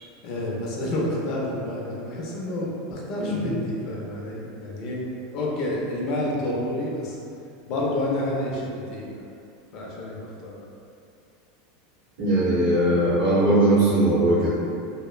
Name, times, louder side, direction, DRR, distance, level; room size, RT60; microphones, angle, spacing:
voice 1, 0.2-7.2 7.7-9.2 9.7-10.6, left 1 dB, 50° left, -4 dB, 0.6 m, -29 dB
voice 2, 3.2-3.5 12.2-14.6, right 1 dB, 75° right, -12 dB, 0.8 m, -20 dB
2.9 x 2.1 x 2.3 m, 2.5 s
supercardioid pair, 125°, 0 cm